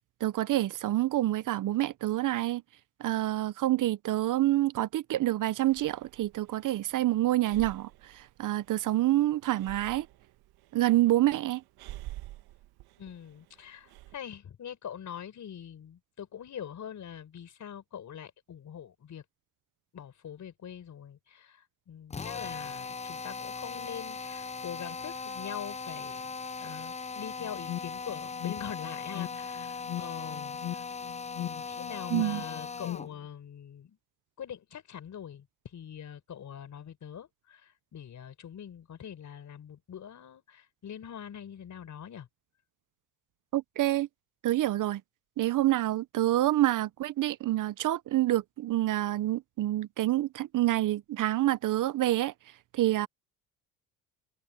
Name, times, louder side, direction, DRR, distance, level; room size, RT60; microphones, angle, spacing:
voice 1, 0.2-2.6 3.0-10.1 10.7-11.6 32.1-32.4 43.5-44.1 44.4-45.0 45.4-52.3 52.7-53.1, right 15 dB, 55° right, 0.8 m, -27 dB
Breathing, 5.7-14.2, right 16 dB, 75° right, 1.7 m, -49 dB
voice 2, 13.0-19.2 19.9-30.9 31.4-34.0 34.4-42.3, left 9 dB, 50° left, 4.8 m, -43 dB
Drill, 22.1-33.1, left 5 dB, 20° left, 0.7 m, -39 dB
Alarm, 27.4-33.3, left 14 dB, 65° left, 1.7 m, -40 dB
supercardioid pair, 85°, 37 cm